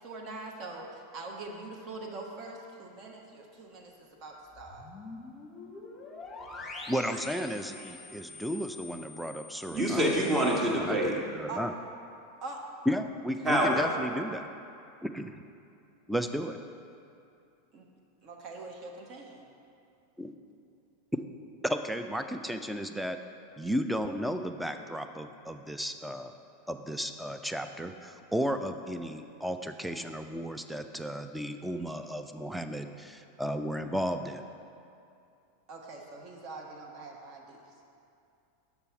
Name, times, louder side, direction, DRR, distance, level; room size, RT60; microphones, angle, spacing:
voice 1, 0.0-4.8 11.5-11.6 12.4-12.6 17.7-17.8 18.2-19.5 35.7-37.6, right 3 dB, 45° right, 0 dB, 1.0 m, -43 dB
sound 1, 4.5-10.6, left 3 dB, 20° left, 1.1 m, -45 dB
voice 2, 6.9-10.0 10.7-11.7 12.9-14.5 15.0-15.3 16.1-16.6 20.2-20.3 21.1-21.2 21.6-23.2 23.6-26.3 26.7-34.4, equal, 5° right, 8 dB, 0.4 m, -34 dB
voice 3, 9.7-11.1 13.4-13.9, right 1 dB, 20° right, -1 dB, 1.3 m, -26 dB
6.9 x 6.0 x 4.4 m, 2.6 s
figure-of-eight pair, 90°, 0 cm